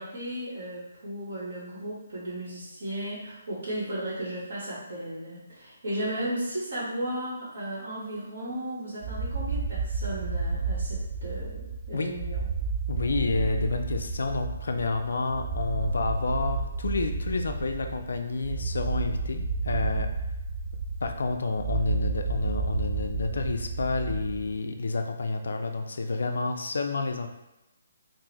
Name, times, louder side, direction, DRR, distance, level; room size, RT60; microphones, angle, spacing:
voice 1, 0.0-12.4, right 1 dB, 65° right, -11 dB, 1.1 m, -35 dB
sound 1, 9.0-24.6, right 4 dB, 40° right, 0.3 m, -31 dB
voice 2, 12.9-20.1 21.0-27.3, left 3 dB, 75° left, 5 dB, 0.3 m, -29 dB
3.7 x 2.1 x 2.9 m, 0.95 s
hypercardioid pair, 170°, 0 cm